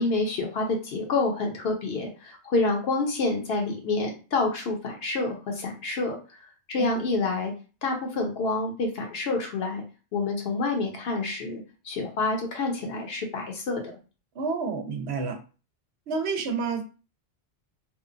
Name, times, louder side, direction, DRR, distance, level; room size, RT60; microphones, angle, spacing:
voice 1, 0.0-6.2 6.7-7.5 7.8-9.8 10.1-13.8, left 3 dB, 65° left, 2 dB, 0.9 m, -28 dB
voice 2, 14.4-15.4 16.1-16.8, right 4 dB, 75° right, 5 dB, 0.8 m, -29 dB
2.7 x 2.1 x 2.5 m, 0.34 s
omnidirectional pair, 1.1 m